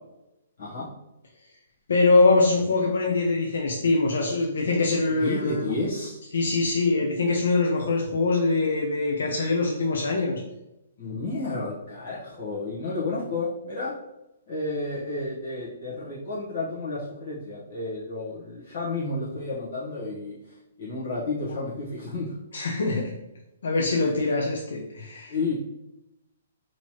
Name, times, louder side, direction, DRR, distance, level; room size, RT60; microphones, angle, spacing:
voice 1, 1.9-5.7 6.3-10.4 22.5-23.1 23.6-25.4, left 3 dB, 75° left, -1 dB, 0.6 m, -23 dB
voice 2, 5.2-6.2 11.0-13.9 14.5-20.3 20.8-22.4 23.9-24.1 25.3-25.5, left 3 dB, 50° left, -7 dB, 1.0 m, -31 dB
4.3 x 2.9 x 3.0 m, 0.90 s
hypercardioid pair, 170°, 0 cm